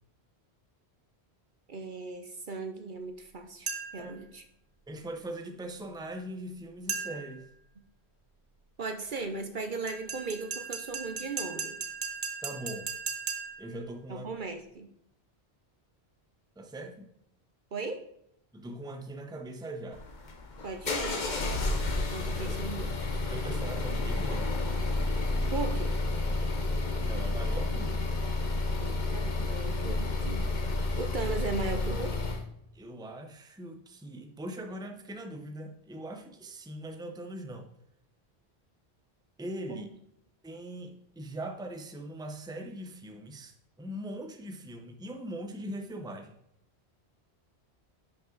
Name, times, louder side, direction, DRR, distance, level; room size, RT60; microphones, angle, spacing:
voice 1, 1.7-3.7 3.9-4.4 8.8-11.8 14.1-14.9 17.7-18.0 20.6-21.5 21.9-22.9 25.5-26.0 28.8-30.5 31.0-32.2 39.7-39.8, right 3 dB, 55° right, 7 dB, 0.9 m, -37 dB
sound 1, 3.7-4.1 6.9-7.4 9.9-13.7, right 5 dB, 70° right, 1.3 m, -37 dB
voice 2, 4.9-7.5 12.4-12.9 13.6-14.3 16.6-17.1 18.5-20.0 22.2-22.6 23.3-24.6 27.0-28.1 32.7-37.7 39.4-39.9 40.4-46.3, right 1 dB, 5° right, 5 dB, 0.7 m, -41 dB
sound 2, 19.9-32.4, left 2 dB, 45° left, 1.1 m, -30 dB
10.5 x 5.8 x 3.9 m, 0.75 s
omnidirectional pair, 1.1 m